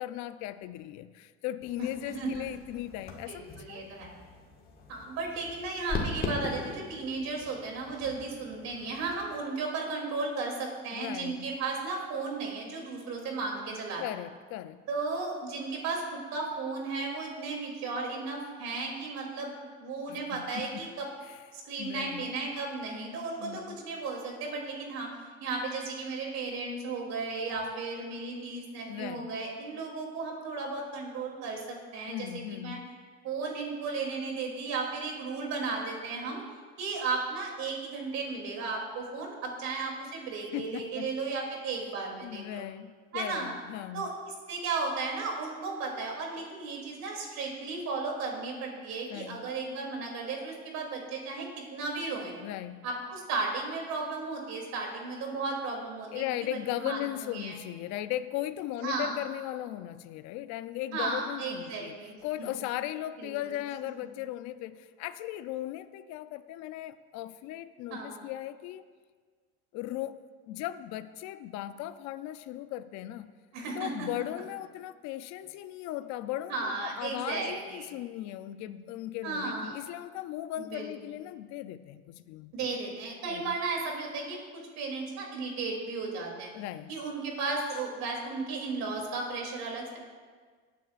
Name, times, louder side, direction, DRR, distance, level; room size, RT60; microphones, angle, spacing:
voice 1, 0.0-3.8 10.9-11.5 14.0-14.8 20.1-20.9 21.3-21.4 21.8-22.2 23.4-23.8 28.9-29.3 32.1-32.9 40.5-41.1 42.2-44.0 49.1-49.4 52.4-52.8 56.1-61.9 62.2-68.8 69.7-70.2 70.5-73.3 73.8-82.5 83.3-83.5 86.5-86.9, left 13 dB, 65° left, 11 dB, 0.6 m, -37 dB
sound 1, 1.6-9.3, left 3 dB, 30° left, 1.7 m, -40 dB
voice 2, 2.1-2.5 3.3-4.1 4.9-14.0 14.9-19.5 19.8-21.1 21.5-25.1 25.4-32.8 33.2-36.4 36.8-42.7 43.1-43.5 43.9-44.1 44.5-52.3 52.8-57.6 58.8-59.2 60.9-62.6 63.2-63.5 67.9-68.2 73.5-74.1 76.5-77.9 79.2-79.8 80.6-80.9 82.5-84.4 84.8-86.5 86.9-90.0, right 3 dB, 60° right, 0 dB, 2.9 m, -35 dB
18.0 x 9.3 x 2.5 m, 1.5 s
cardioid pair, 120°, 30 cm